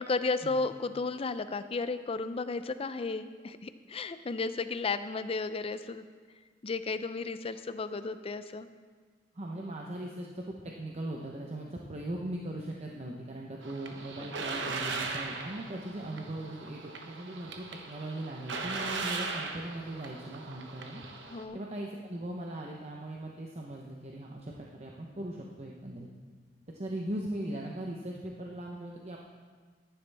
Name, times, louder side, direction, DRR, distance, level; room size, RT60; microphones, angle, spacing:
voice 1, 0.0-6.0 6.6-8.7 14.2-14.3 21.3-21.6, left 3 dB, 30° left, 12 dB, 0.5 m, -33 dB
voice 2, 9.3-21.0 21.5-26.1 26.7-29.2, right 1 dB, 35° right, -1 dB, 0.9 m, -39 dB
sound 1, 13.6-21.4, right 4 dB, 75° right, 1.1 m, -39 dB
14.5 x 10.5 x 3.4 m, 1.5 s
head